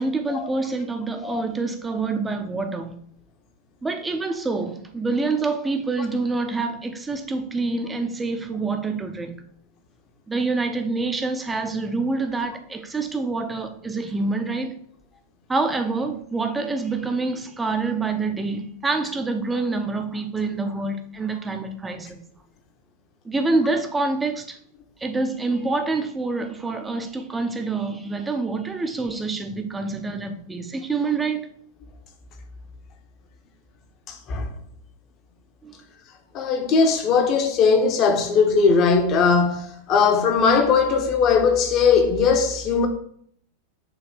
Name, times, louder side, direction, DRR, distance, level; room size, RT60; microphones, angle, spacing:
voice 1, 0.0-3.0 3.8-9.3 10.3-14.7 15.5-22.2 23.2-24.6 25.0-31.5 35.6-35.7, right 3 dB, 10° right, 0.8 m, -26 dB
voice 2, 36.3-42.9, left 5 dB, 35° left, 1.1 m, -19 dB
7.1 x 3.2 x 5.2 m
figure-of-eight pair, 90°, 0 cm